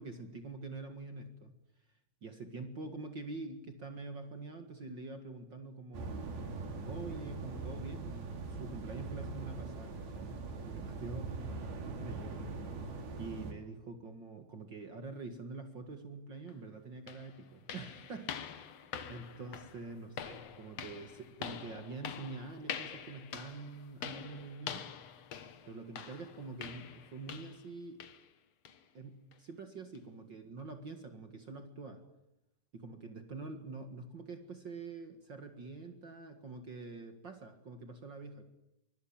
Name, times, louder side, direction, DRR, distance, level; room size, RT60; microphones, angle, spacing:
voice 1, 0.0-1.5 2.2-6.2 6.8-12.3 13.2-18.6 19.1-24.8 25.6-28.0 28.9-32.0 32.7-38.4, right 3 dB, 85° right, 6 dB, 1.0 m, -46 dB
sound 1, 5.9-13.5, right 3 dB, 55° right, 5.0 m, -41 dB
sound 2, 16.5-16.6 17.1-27.7 28.0-28.3 28.7-28.8 29.3-29.4 30.0-30.1, left 8 dB, 70° left, 1.5 m, -45 dB
25.0 x 23.5 x 8.8 m, 0.88 s
omnidirectional pair, 5.3 m